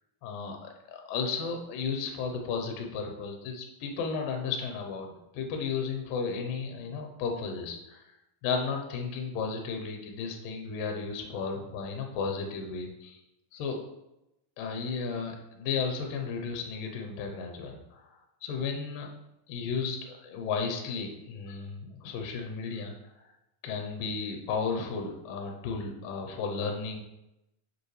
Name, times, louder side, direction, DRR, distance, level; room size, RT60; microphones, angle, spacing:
voice 1, 0.2-8.1 8.4-13.2 13.5-13.8 14.6-18.1 18.4-19.1 19.5-22.9 23.6-27.0, left 5 dB, 75° left, 3 dB, 2.3 m, -34 dB
6.6 x 5.2 x 3.2 m, 0.89 s
omnidirectional pair, 4.2 m